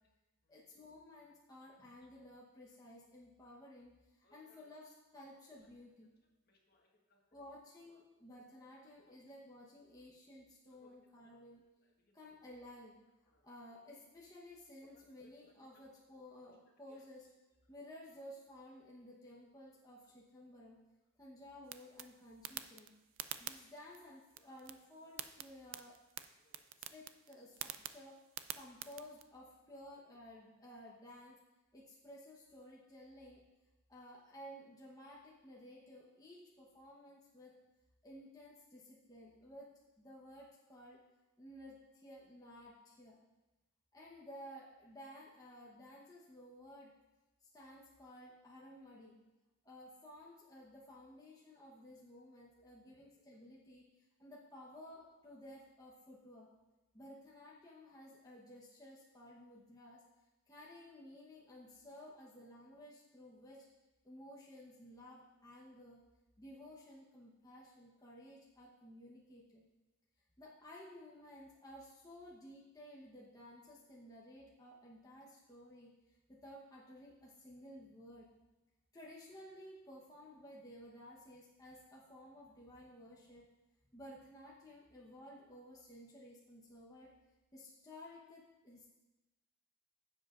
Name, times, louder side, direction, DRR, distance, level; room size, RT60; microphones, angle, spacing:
voice 1, 0.5-6.1 7.3-11.6 12.1-13.0 13.4-17.3 17.7-20.8 21.2-22.9 23.4-26.0 26.8-28.2 28.5-31.4 31.7-33.4 33.9-37.5 38.0-39.7 40.0-41.0 41.4-43.2 43.9-46.9 47.4-49.2 49.6-56.5 56.9-60.0 60.5-63.6 64.0-66.0 66.4-69.6 70.4-78.3 78.9-83.4 83.9-87.1 87.5-88.9, left 1 dB, 15° left, -5 dB, 1.0 m, -55 dB
voice 2, 4.2-4.6 5.3-5.4 6.5-7.2 10.8-10.9 11.2-11.4 12.0-12.2 13.3-13.4 15.7-15.9 16.9-17.0 26.4-26.7, left 3 dB, 45° left, 0 dB, 1.5 m, -71 dB
sound 1, 21.6-29.2, right 11 dB, 60° right, 0.4 m, -49 dB
16.0 x 7.4 x 2.5 m, 1.1 s
head